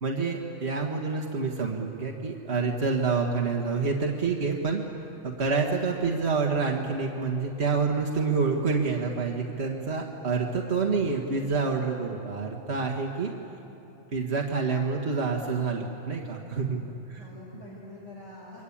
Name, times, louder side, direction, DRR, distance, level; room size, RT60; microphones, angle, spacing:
voice 1, 0.0-4.8 5.2-13.3 14.1-16.8 17.1-17.2, right 4 dB, 60° right, 0 dB, 1.9 m, -27 dB
voice 2, 16.4-18.6, left 1 dB, 75° left, -6 dB, 6.0 m, -46 dB
29.5 x 23.0 x 8.7 m, 2.8 s
omnidirectional pair, 1.3 m